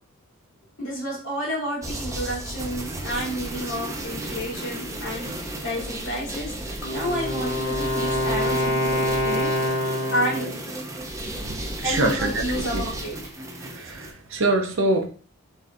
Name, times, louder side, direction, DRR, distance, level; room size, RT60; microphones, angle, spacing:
voice 1, 0.8-5.3 5.6-10.5 11.8-13.2, equal, 55° left, -3 dB, 2.0 m, -30 dB
sound 1, 1.8-14.1, right 1 dB, 15° right, 0.4 m, -34 dB
Wind instrument woodwind instrument, 6.8-10.7, left 1 dB, 70° left, 1.0 m, -25 dB
voice 2, 11.4-12.9 13.7-15.1, right 2 dB, 55° right, 4 dB, 0.6 m, -25 dB
4.1 x 3.6 x 2.5 m, 0.41 s
head